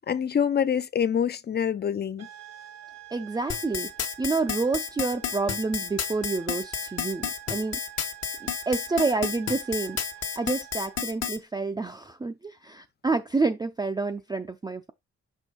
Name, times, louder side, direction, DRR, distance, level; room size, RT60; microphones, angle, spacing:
voice 1, 0.1-2.3, left 8 dB, 35° left, 0.5 m, -25 dB
sound 1, 2.2-11.1, right 14 dB, 60° right, 0.8 m, -46 dB
voice 2, 3.1-3.9 4.2-7.8 8.7-10.0 10.4-14.9, right 3 dB, 15° right, 0.4 m, -28 dB
sound 2, 3.5-11.4, left 7 dB, 60° left, 1.3 m, -31 dB
6.4 x 3.3 x 5.0 m
wide cardioid pair, 155°, 29 cm